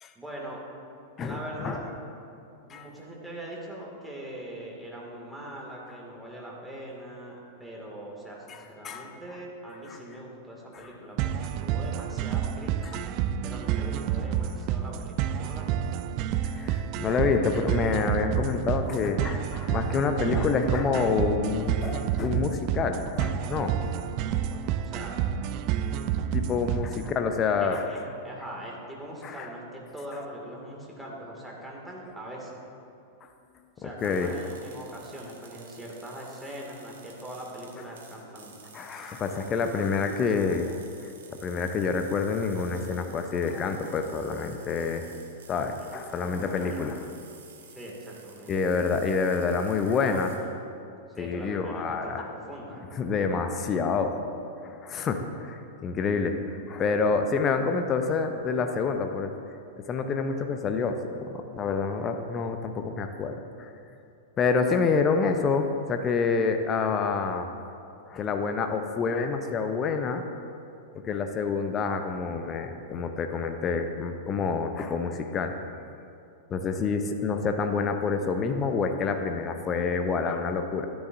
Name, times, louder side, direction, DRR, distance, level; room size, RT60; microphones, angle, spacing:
voice 1, 0.2-0.6 1.2-1.9 2.6-13.0 13.4-15.8 23.8-25.2 27.6-32.6 33.8-38.6 46.7-46.8 47.8-48.5 50.1-50.5 51.1-52.8, right 1 dB, 5° right, -4 dB, 2.3 m, -41 dB
voice 2, 1.2-1.8 2.7-2.9 8.5-9.1 9.9-10.0 10.7-10.9 12.8-13.0 16.4-23.7 26.3-27.8 29.2-29.5 33.8-34.3 38.7-45.1 45.5-47.1 48.5-50.3 51.2-52.3 52.9-54.1 54.6-59.3 59.9-63.7 64.4-67.5 68.1-70.2 71.0-75.6 76.5-80.9, left 5 dB, 25° left, 6 dB, 0.7 m, -28 dB
sound 1, 11.2-27.2, right 9 dB, 45° right, 0.4 m, -29 dB
sound 2, 34.0-50.4, right 5 dB, 65° right, 1.4 m, -52 dB
13.5 x 10.5 x 2.7 m, 2.6 s
figure-of-eight pair, 95°, 0 cm